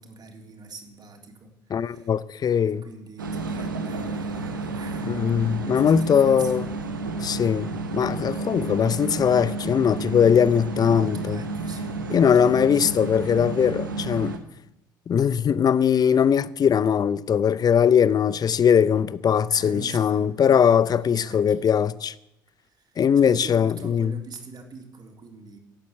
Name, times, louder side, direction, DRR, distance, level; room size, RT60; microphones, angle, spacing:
voice 1, 0.0-2.1 2.6-5.3 5.7-6.9 10.7-12.9 19.5-21.6 22.6-25.6, right 4 dB, 40° right, 3.5 m, -43 dB
voice 2, 1.7-2.8 5.1-6.6 7.2-11.4 12.1-14.4 15.1-22.1 23.0-24.1, left 8 dB, 40° left, 0.7 m, -20 dB
sound 1, 3.2-14.4, right 3 dB, 90° right, 1.3 m, -31 dB
16.0 x 8.5 x 8.1 m
hypercardioid pair, 55°, 11 cm